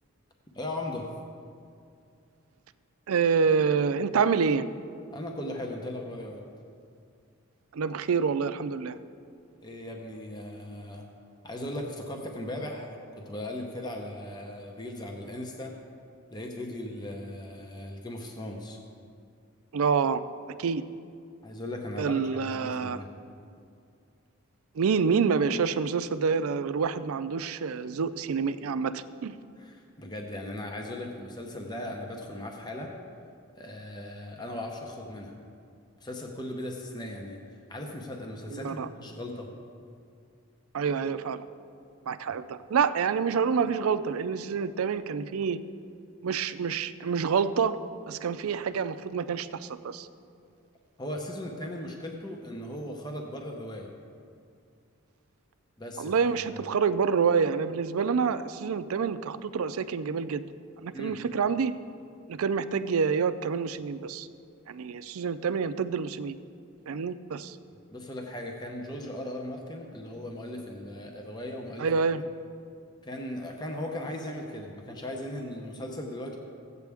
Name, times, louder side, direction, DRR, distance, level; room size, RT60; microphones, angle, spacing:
voice 1, 0.5-1.1 5.1-6.4 9.6-11.1 11.4-15.8 16.3-18.8 21.4-23.1 29.6-32.9 33.6-35.4 36.0-39.5 42.3-42.4 51.0-53.9 55.8-56.1 56.5-56.6 60.9-61.2 67.9-71.9 72.2-72.3 73.0-76.4, left 1 dB, 20° left, 1 dB, 0.8 m, -38 dB
voice 2, 3.1-4.7 7.7-9.0 19.7-20.2 20.6-20.8 22.0-23.0 24.7-29.4 38.5-38.9 40.7-41.4 42.1-45.6 46.2-47.8 48.1-50.1 56.0-60.4 60.8-61.7 62.3-64.3 64.7-66.4 66.9-67.6 71.8-72.2, right 6 dB, 90° right, 12 dB, 0.4 m, -27 dB
15.5 x 8.3 x 3.5 m, 2.4 s
head